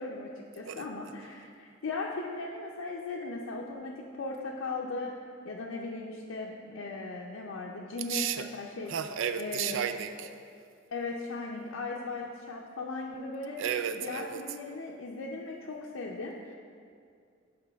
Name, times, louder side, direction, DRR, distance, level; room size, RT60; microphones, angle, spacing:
voice 1, 0.0-5.1 5.4-8.9 9.4-9.9 10.9-13.6 13.9-16.6, left 3 dB, 90° left, -2 dB, 0.5 m, -38 dB
voice 2, 8.1-8.5 8.9-10.3 13.6-14.4, right 8 dB, 70° right, 10 dB, 0.4 m, -33 dB
8.0 x 5.1 x 3.4 m, 2.3 s
head